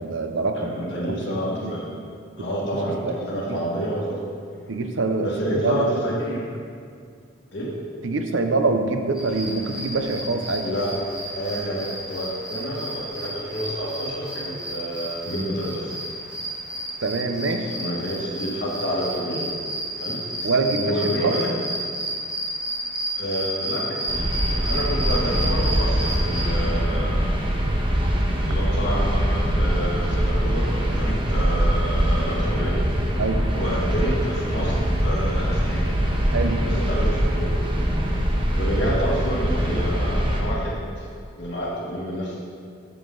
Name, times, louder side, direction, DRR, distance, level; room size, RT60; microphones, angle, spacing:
voice 1, 0.0-0.8 1.0-1.8 2.4-2.5 2.7-3.6 4.7-6.0 8.0-10.7 17.0-17.7 20.4-21.0 21.2-21.4 33.2-33.5 36.3-36.6 38.9-39.0, right 3 dB, 75° right, 6 dB, 0.6 m, -25 dB
voice 2, 0.5-1.9 2.4-4.2 5.2-6.4 7.5-7.7 10.6-10.9 11.2-15.9 17.7-19.5 20.0-21.5 23.1-27.2 28.4-33.1 33.6-35.9 36.6-37.7 38.6-41.1 41.3-42.4, equal, 55° left, -5 dB, 1.8 m, -29 dB
Cricket chirping, 9.1-26.4, right 1 dB, 5° right, 1.9 m, -31 dB
sound 1, 24.1-40.4, equal, 25° right, 0.9 m, -23 dB
7.8 x 7.2 x 3.8 m, 2.2 s
head